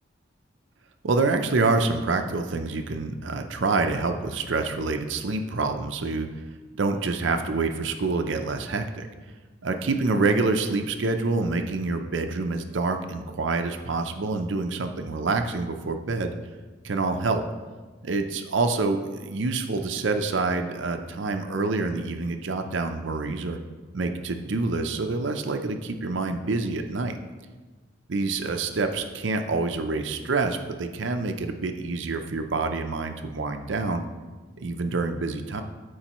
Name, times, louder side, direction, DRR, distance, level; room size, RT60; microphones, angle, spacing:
voice 1, 1.0-6.3 6.8-9.1 9.6-16.3 16.8-17.4 18.0-23.6 23.9-27.2 28.1-34.0 34.6-35.6, right 3 dB, 75° right, 6 dB, 0.6 m, -27 dB
13.0 x 4.7 x 3.0 m, 1.3 s
head